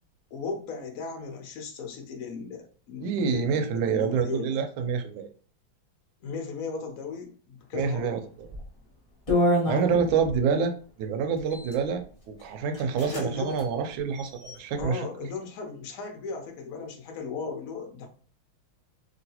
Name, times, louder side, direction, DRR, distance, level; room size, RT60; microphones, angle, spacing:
voice 1, 0.3-4.6 6.2-8.2 13.0-13.5 14.8-18.1, left 5 dB, 65° left, 2 dB, 0.9 m, -36 dB
voice 2, 3.0-5.3 7.7-8.5 9.6-10.7 11.0-15.0, right 6 dB, 80° right, 6 dB, 1.3 m, -27 dB
sound 1, 8.4-8.7 9.3-10.4 11.4-11.8 12.4-12.5 12.7-13.2 13.5-13.6 14.1-14.8, left 1 dB, 40° left, 0.4 m, -28 dB
3.0 x 2.8 x 2.8 m, 0.43 s
omnidirectional pair, 2.2 m